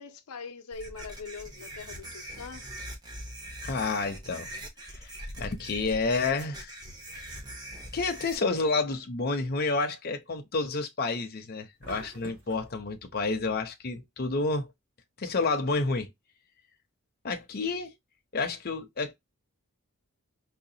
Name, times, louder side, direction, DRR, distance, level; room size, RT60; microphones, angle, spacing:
voice 1, 0.0-2.7 5.4-5.5, left 5 dB, 85° left, 0.6 m, -42 dB
sound 1, 0.7-8.4, right 1 dB, 20° right, 0.8 m, -42 dB
voice 2, 3.6-4.5 4.8-5.1 5.4-6.8 7.1-7.3 7.9-14.7 15.2-16.1 17.2-17.9 18.3-19.1, left 3 dB, 45° left, 0.6 m, -30 dB
sound 2, 11.8-12.7, right 3 dB, 60° right, 2.8 m, -45 dB
4.9 x 2.2 x 2.7 m
head